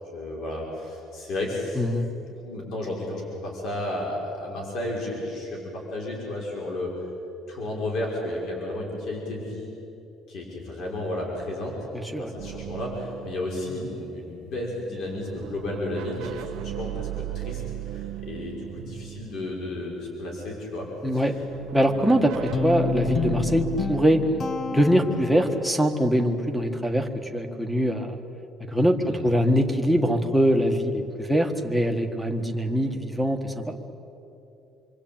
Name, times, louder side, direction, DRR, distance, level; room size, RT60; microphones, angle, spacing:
voice 1, 0.1-1.9 2.4-6.9 7.5-9.7 10.3-11.8 12.1-21.4 29.0-29.2, left 1 dB, 55° left, -2 dB, 5.8 m, -33 dB
voice 2, 1.7-2.1 12.1-12.3 21.0-21.3 21.7-24.2 24.7-28.2 28.7-33.6, equal, ahead, 7 dB, 1.6 m, -23 dB
sound 1, 12.4-14.6 15.0-20.1 21.1-26.5, right 14 dB, 80° right, 0.9 m, -37 dB
Guitar, 22.5-25.8, left 6 dB, 30° left, 0.7 m, -29 dB
27.0 x 24.0 x 8.9 m, 2.9 s
cardioid pair, 175°, 0 cm